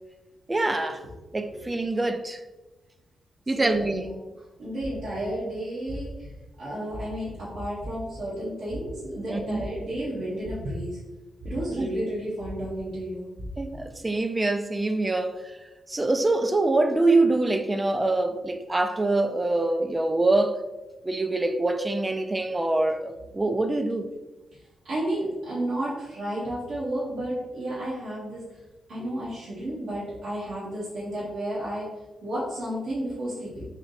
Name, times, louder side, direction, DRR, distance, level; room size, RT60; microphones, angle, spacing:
voice 1, 0.5-1.0 1.3-2.4 3.5-4.1 9.3-9.6 11.8-11.9 13.6-15.4 15.9-20.6 21.1-24.1, right 2 dB, 20° right, 0.3 m, -24 dB
voice 2, 3.6-4.1 4.6-6.1 6.6-11.0 11.4-13.3 24.9-28.4 28.9-31.9 32.2-33.6, right 1 dB, 70° right, 1.1 m, -32 dB
sound 1, 4.8-5.3 5.9-6.3 6.9-7.3 7.7-8.2 8.7-9.1 9.5-10.0 10.4-11.0 11.4-11.8 12.4-12.8 13.4-13.8, equal, 35° right, 0.9 m, -39 dB
3.3 x 2.7 x 3.9 m
cardioid pair, 120°, 0 cm